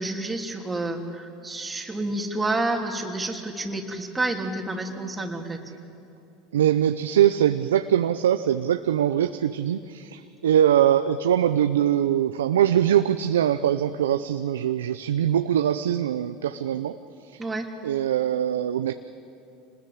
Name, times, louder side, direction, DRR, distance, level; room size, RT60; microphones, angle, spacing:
voice 1, 0.0-5.6 17.4-17.7, right 2 dB, 15° right, 1 dB, 3.1 m, -29 dB
voice 2, 6.5-17.0 17.3-17.4 17.8-18.9, right 10 dB, 90° right, 10 dB, 0.6 m, -22 dB
26.0 x 20.0 x 8.6 m, 2.7 s
hypercardioid pair, 85°, 0 cm